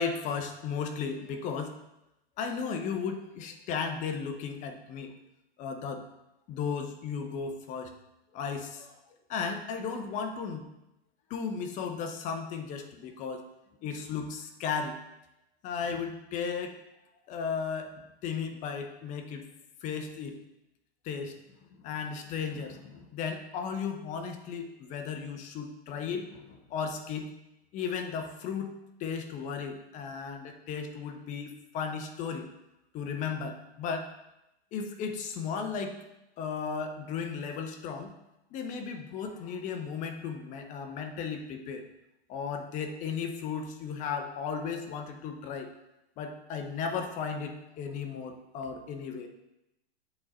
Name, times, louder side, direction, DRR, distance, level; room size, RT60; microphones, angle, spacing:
voice 1, 0.0-1.7 2.4-5.1 5.6-6.0 6.5-7.9 8.3-8.9 9.3-10.7 11.3-13.4 13.8-14.9 15.6-16.7 17.3-19.5 19.8-20.4 21.0-21.4 21.8-27.3 27.7-28.7 29.0-32.5 32.9-34.1 34.7-36.0 36.4-38.1 38.5-41.8 42.3-45.7 46.2-49.3, left 6 dB, 25° left, 6 dB, 0.6 m, -35 dB
7.8 x 3.6 x 4.3 m, 0.90 s
hypercardioid pair, 140°, 32 cm